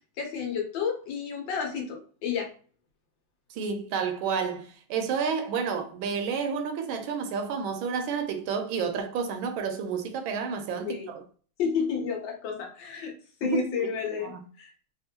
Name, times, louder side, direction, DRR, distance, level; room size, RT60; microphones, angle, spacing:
voice 1, 0.2-2.5 10.8-11.1 11.6-13.1 13.4-14.3 14.6-14.7, left 6 dB, 70° left, 1.4 m, -30 dB
voice 2, 3.5-11.0 13.4-13.9 14.2-14.4, right 6 dB, 80° right, 1.3 m, -30 dB
3.5 x 2.5 x 2.7 m
omnidirectional pair, 2.3 m